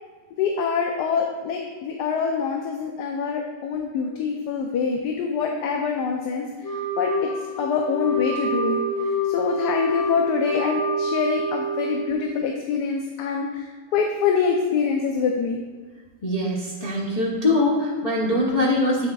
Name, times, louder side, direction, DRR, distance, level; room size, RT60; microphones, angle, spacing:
voice 1, 0.4-7.3 7.6-15.6, left 6 dB, 80° left, 2 dB, 1.2 m, -25 dB
Wind instrument woodwind instrument, 6.6-12.3, equal, 55° left, 1.1 m, -27 dB
voice 2, 16.2-19.1, left 1 dB, 35° left, -7 dB, 0.6 m, -22 dB
8.3 x 6.1 x 2.3 m, 1.4 s
omnidirectional pair, 1.8 m